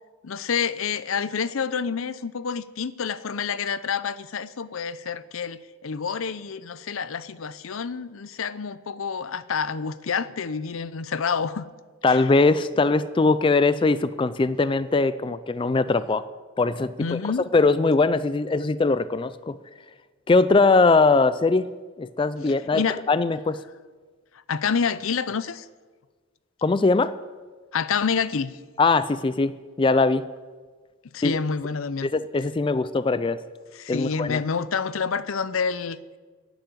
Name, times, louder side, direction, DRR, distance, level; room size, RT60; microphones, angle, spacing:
voice 1, 0.2-11.6 12.1-12.2 17.0-17.4 22.4-23.0 24.5-25.7 27.7-28.6 31.1-32.1 33.7-36.2, left 6 dB, 75° left, 16 dB, 0.6 m, -28 dB
voice 2, 12.0-16.3 16.6-17.2 17.5-19.6 20.3-21.7 22.0-22.8 23.1-23.6 26.6-27.1 28.8-29.5 29.8-30.2 31.2-31.4 32.0-33.4 33.9-34.4, left 3 dB, 25° left, 14 dB, 0.3 m, -21 dB
11.5 x 9.3 x 9.1 m, 1.4 s
head